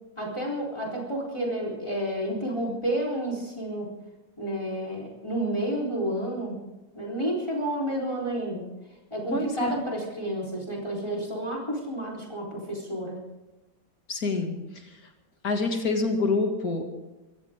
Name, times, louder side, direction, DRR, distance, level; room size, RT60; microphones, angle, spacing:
voice 1, 0.2-3.9 4.4-6.6 6.9-8.7 9.1-13.2, right 1 dB, 15° left, -2 dB, 4.1 m, -30 dB
voice 2, 9.3-9.7 14.1-14.5 15.4-16.9, left 3 dB, 55° left, 3 dB, 2.9 m, -26 dB
25.5 x 15.0 x 3.8 m, 1.1 s
omnidirectional pair, 1.9 m